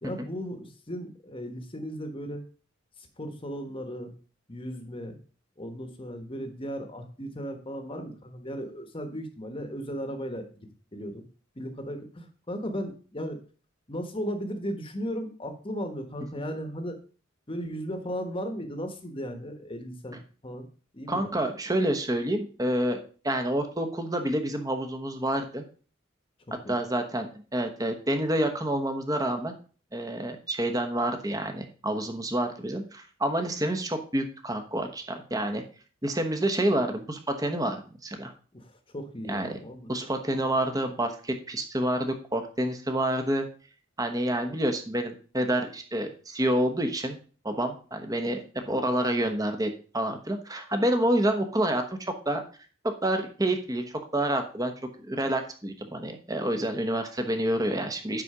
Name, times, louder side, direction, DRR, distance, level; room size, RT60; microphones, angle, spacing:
voice 1, 0.0-2.4 3.2-4.1 4.5-5.2 5.6-11.2 11.5-13.4 13.9-17.0 17.5-20.7 20.9-21.3 26.5-26.8 38.5-39.9 40.3-40.4 48.6-48.8, equal, 25° left, 6 dB, 1.3 m, -36 dB
voice 2, 21.1-25.6 26.7-29.6 29.9-35.6 36.0-38.3 39.3-39.5 39.9-43.5 44.0-47.2 47.4-48.4 48.7-52.4 52.8-58.2, right 1 dB, 20° right, 6 dB, 1.1 m, -28 dB
10.0 x 4.3 x 4.9 m, 0.39 s
head